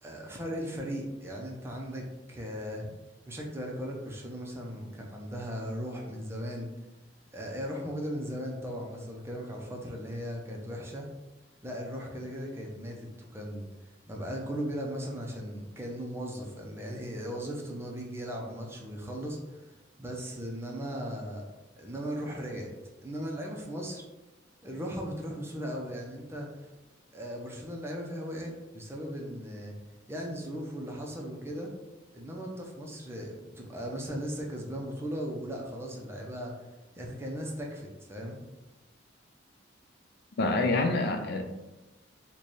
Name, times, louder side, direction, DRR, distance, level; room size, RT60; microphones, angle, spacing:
voice 1, 0.0-2.9 3.3-6.7 7.3-11.1 11.6-21.5 21.8-22.7 23.0-24.0 24.6-26.7 27.1-29.8 30.1-31.7 32.1-36.6 37.0-38.4, equal, 15° right, -1 dB, 0.5 m, -37 dB
voice 2, 40.4-41.4, left 2 dB, 60° left, 5 dB, 0.4 m, -26 dB
3.2 x 2.2 x 4.0 m, 1.1 s
head